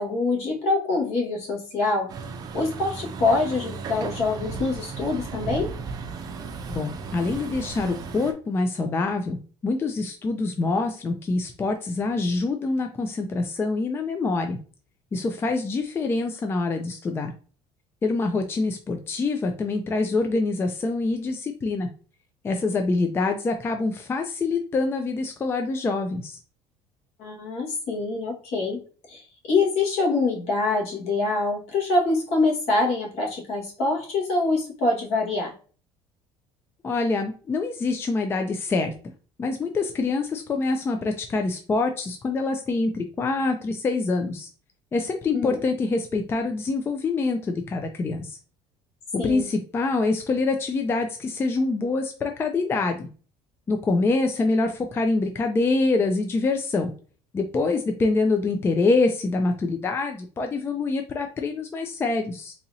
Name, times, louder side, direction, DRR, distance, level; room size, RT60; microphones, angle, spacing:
voice 1, 0.0-2.1 2.5-5.7 27.2-28.8 29.1-29.2 29.5-35.5 45.3-45.5 49.2-49.5, left 3 dB, 60° left, -2 dB, 1.6 m, -25 dB
Truck, 2.1-8.3, right 4 dB, 35° right, 0.5 m, -35 dB
voice 2, 6.7-9.4 9.6-14.6 15.1-17.3 18.0-21.9 22.4-26.4 36.8-38.9 39.4-44.5 44.9-48.4 49.1-53.1 53.7-56.9 57.3-62.5, left 3 dB, 20° left, 5 dB, 0.4 m, -25 dB
4.0 x 2.8 x 2.7 m, 0.39 s
cardioid pair, 140°, 12 cm